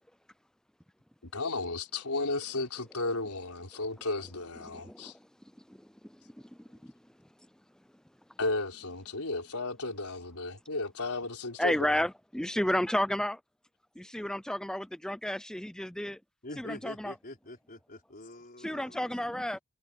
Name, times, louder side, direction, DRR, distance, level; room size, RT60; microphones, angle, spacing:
voice 1, 1.2-5.1 8.4-12.0, left 2 dB, 80° left, 4.8 m, -34 dB
voice 2, 4.7-5.1 5.8-5.9 6.8-6.9 11.6-13.4 14.0-16.2 16.6-17.1 18.6-19.6, left 1 dB, 5° left, 0.5 m, -31 dB
voice 3, 16.4-19.1, left 1 dB, 40° left, 4.9 m, -45 dB
head